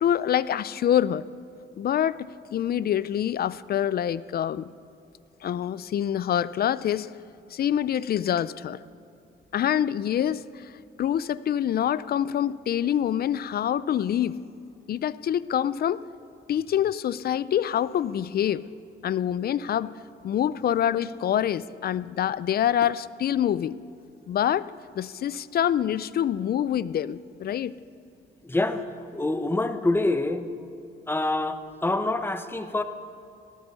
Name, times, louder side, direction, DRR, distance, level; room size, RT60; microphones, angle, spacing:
voice 1, 0.0-1.2 1.8-4.7 5.4-7.1 7.5-8.8 9.5-10.7 11.0-14.4 14.9-16.0 16.5-18.6 19.0-20.0 20.2-23.8 24.3-27.7, left 10 dB, 50° left, 18 dB, 0.5 m, -26 dB
voice 2, 28.4-28.9 29.1-30.5 31.1-32.8, left 2 dB, 10° left, 9 dB, 0.9 m, -26 dB
18.0 x 12.5 x 5.6 m, 2.6 s
cardioid pair, 90°, 20 cm